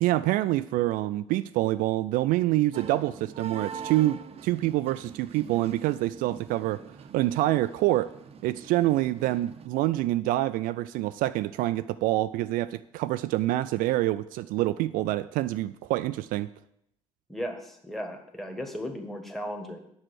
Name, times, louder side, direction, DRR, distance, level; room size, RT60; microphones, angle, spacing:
voice 1, 0.0-6.8 7.1-8.1 8.4-16.5, right 16 dB, 55° right, 13 dB, 0.4 m, -26 dB
sound 1, 2.7-9.7, right 6 dB, 35° right, 0.8 m, -43 dB
voice 2, 17.3-19.8, equal, ahead, 4 dB, 1.5 m, -36 dB
8.2 x 5.9 x 6.4 m, 0.77 s
figure-of-eight pair, 55°, 17 cm